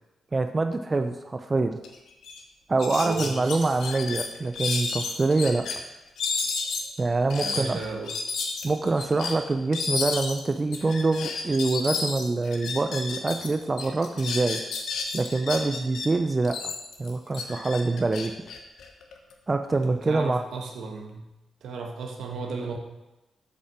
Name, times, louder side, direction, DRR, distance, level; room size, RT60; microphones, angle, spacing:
voice 1, 0.3-1.8 2.7-5.6 7.0-7.8 8.6-14.6 15.1-16.6 17.0-18.3 19.5-20.4, right 3 dB, 35° right, 7 dB, 0.5 m, -25 dB
sound 1, 1.8-1.9 2.2-2.4 2.8-5.8 6.2-13.5 13.8-16.1 16.4-19.3, left 4 dB, 75° left, 1.0 m, -32 dB
voice 2, 3.0-3.7 7.4-8.1 19.9-21.3 21.6-22.8, right 4 dB, 75° right, 3 dB, 1.2 m, -35 dB
6.8 x 5.2 x 6.1 m, 1.0 s
supercardioid pair, 50°, 0 cm